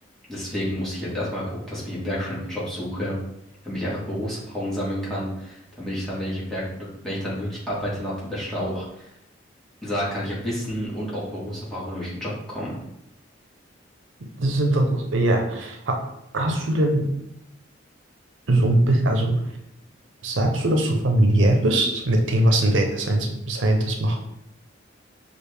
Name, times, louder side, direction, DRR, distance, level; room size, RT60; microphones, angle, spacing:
voice 1, 0.3-3.2 3.6-9.1 9.8-12.8, equal, ahead, -8 dB, 1.5 m, -30 dB
voice 2, 14.4-16.0 16.3-17.1 18.5-19.4 20.2-24.2, right 1 dB, 75° right, 3 dB, 0.6 m, -21 dB
6.3 x 2.5 x 3.3 m, 0.80 s
head